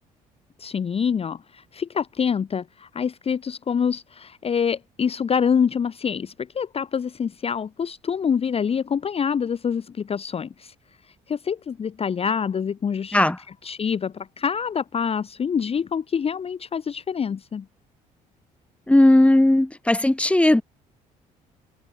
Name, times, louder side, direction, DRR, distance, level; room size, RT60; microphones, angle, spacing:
voice 1, 0.6-10.7 11.3-13.3 13.6-17.6, left 7 dB, 30° left, 0.9 m, -26 dB
voice 2, 18.9-20.6, left 1 dB, 5° left, 1.6 m, -17 dB
figure-of-eight pair, 50°, 19 cm